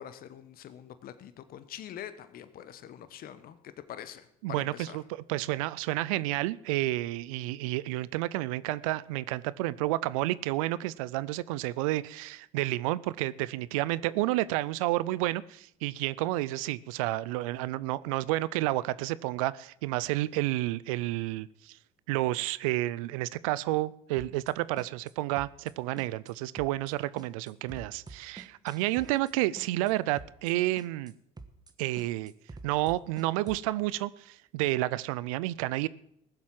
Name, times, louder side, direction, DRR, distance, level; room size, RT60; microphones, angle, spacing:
voice 1, 0.0-5.0, left 10 dB, 60° left, 0.9 m, -44 dB
voice 2, 4.4-5.0 5.3-21.8 22.1-31.1 31.8-32.3 32.6-35.9, right 17 dB, 90° right, 0.4 m, -30 dB
sound 1, 24.2-24.5 24.8-25.1 25.4-25.7 26.0-26.3 26.6-26.9 27.2-29.3 29.6-29.9 30.2-30.5 30.8-31.1 31.4-31.7 32.0-33.7, right 3 dB, 25° right, 1.4 m, -47 dB
16.0 x 7.5 x 7.5 m
hypercardioid pair, 65°, 17 cm